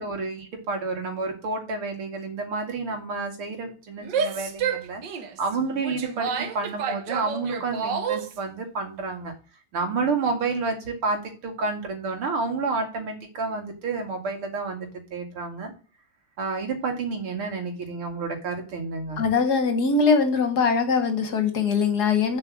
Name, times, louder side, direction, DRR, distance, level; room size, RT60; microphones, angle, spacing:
voice 1, 0.0-5.0 5.4-9.3 9.7-15.7 16.4-19.2, right 4 dB, 85° right, 4 dB, 3.1 m, -30 dB
Female speech woman speaking / Yell, 4.0-8.4, right 6 dB, 60° right, 1.5 m, -29 dB
voice 2, 19.2-22.4, left 5 dB, 55° left, 8 dB, 1.6 m, -22 dB
7.4 x 5.3 x 7.3 m, 0.36 s
omnidirectional pair, 2.3 m